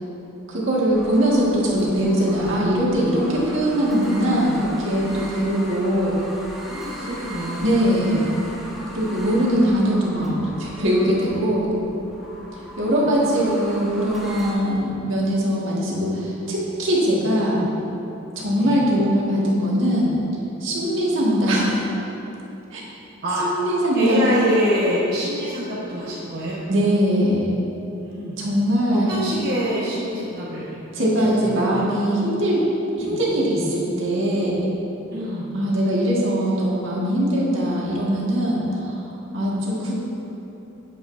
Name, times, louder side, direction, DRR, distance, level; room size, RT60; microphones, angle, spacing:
voice 1, 0.5-6.1 7.6-8.4 8.9-11.7 12.8-17.6 18.4-20.1 20.6-21.7 22.7-22.8 23.4-24.3 26.7-27.5 28.4-29.2 30.9-32.6 33.0-34.6 35.5-39.1 39.3-39.9, equal, 70° right, -5 dB, 1.8 m, -21 dB
sound 1, 0.9-14.5, equal, ahead, 1.4 m, -39 dB
voice 2, 6.7-8.1 12.7-13.1 18.5-18.8 23.2-23.4 23.9-26.6 28.0-28.4 28.9-31.8 33.0-33.2 35.1-35.5, equal, 50° right, -9 dB, 1.2 m, -26 dB
10.5 x 8.0 x 2.7 m, 3.0 s
head